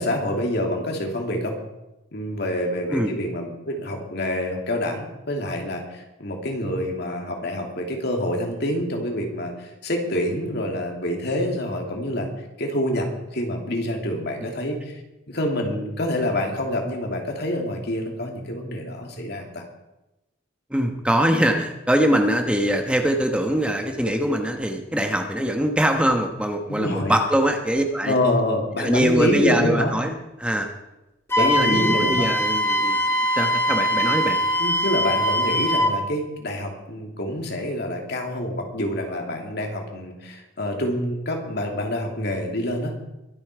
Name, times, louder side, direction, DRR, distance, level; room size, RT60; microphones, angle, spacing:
voice 1, 0.0-1.5 2.1-12.3 12.6-15.0 15.3-19.6 26.7-27.2 28.1-29.9 31.4-32.3 34.6-42.9, left 1 dB, 60° left, 2 dB, 2.7 m, -27 dB
voice 2, 20.7-28.1 28.8-30.1 30.4-30.7 31.4-33.0 33.4-34.4, equal, 5° right, 4 dB, 1.1 m, -22 dB
Wind instrument woodwind instrument, 31.3-36.0, equal, 15° left, 3.6 m, -22 dB
22.5 x 8.5 x 4.8 m, 0.97 s
head